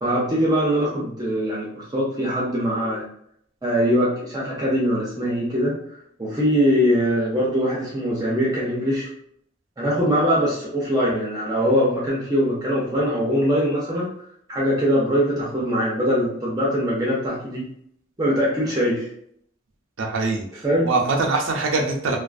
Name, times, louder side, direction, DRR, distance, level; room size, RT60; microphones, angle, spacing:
voice 1, 0.0-1.7 1.9-3.0 3.6-5.8 6.2-9.1 9.8-14.1 14.5-17.7 18.2-19.1 20.6-20.9, equal, 20° right, -5 dB, 0.5 m, -22 dB
voice 2, 20.0-22.2, right 3 dB, 90° right, 2 dB, 0.5 m, -23 dB
2.4 x 2.4 x 2.4 m, 0.68 s
head